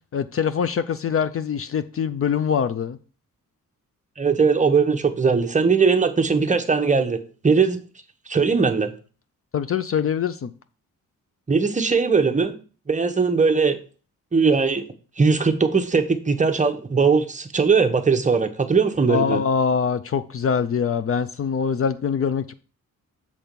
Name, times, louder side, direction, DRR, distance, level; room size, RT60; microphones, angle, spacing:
voice 1, 0.1-3.0 9.5-10.5 19.1-22.5, left 7 dB, 45° left, 0.5 m, -23 dB
voice 2, 4.2-7.2 7.4-7.8 8.3-8.9 11.5-12.6 12.9-13.8 14.3-14.8 15.2-19.4, right 5 dB, 25° right, 0.8 m, -19 dB
7.3 x 4.4 x 5.2 m
wide cardioid pair, 130°, 33 cm